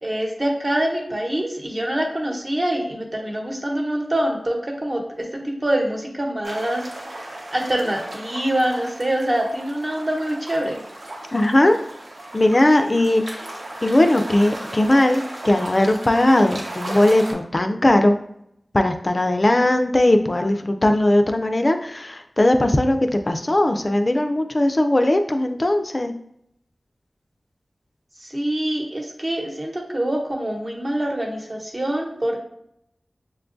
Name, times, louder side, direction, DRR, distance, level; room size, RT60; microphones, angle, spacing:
voice 1, 0.0-6.9 7.2-10.8 28.3-32.4, right 1 dB, 40° right, 0 dB, 1.0 m, -25 dB
sound 1, 6.4-17.3, right 1 dB, 70° right, 1.0 m, -36 dB
voice 2, 11.3-11.8 12.3-13.4 13.8-18.2 18.7-26.1, left 1 dB, 40° left, 6 dB, 0.4 m, -18 dB
6.1 x 2.3 x 2.5 m, 0.74 s
cardioid pair, 40°, 0 cm